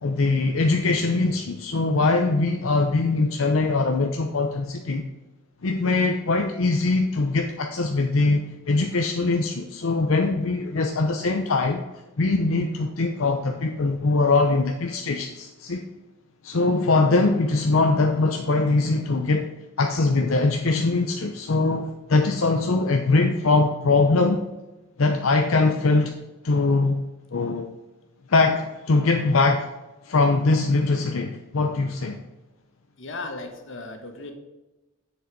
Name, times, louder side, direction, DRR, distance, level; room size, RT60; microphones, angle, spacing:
voice 1, 0.0-5.0 5.6-11.8 12.2-15.9 16.4-19.5 19.8-24.4 25.0-26.1 26.4-27.0 27.3-27.7 28.3-29.7 30.0-32.2, left 3 dB, 85° left, 3 dB, 0.7 m, -22 dB
voice 2, 33.0-34.3, left 3 dB, 65° left, 5 dB, 1.4 m, -36 dB
7.4 x 6.5 x 4.6 m, 1.1 s
head